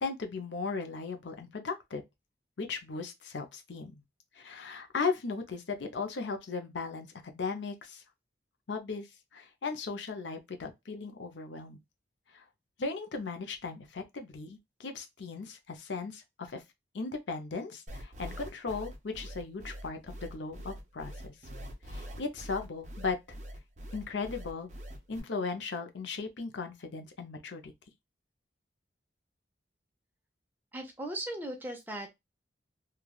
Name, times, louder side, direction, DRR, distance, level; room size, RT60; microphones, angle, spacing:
voice 1, 0.0-2.0 2.6-4.0 4.3-7.1 7.3-8.0 8.7-9.1 9.3-11.8 12.3-12.4 12.8-16.6 16.9-21.3 21.9-23.2 23.9-24.7 25.1-27.7, left 4 dB, 75° left, 0.6 m, -37 dB
sound 1, 17.9-25.2, equal, 40° right, 0.7 m, -43 dB
voice 2, 30.7-32.1, right 1 dB, 10° right, 0.6 m, -38 dB
3.2 x 2.3 x 2.3 m
head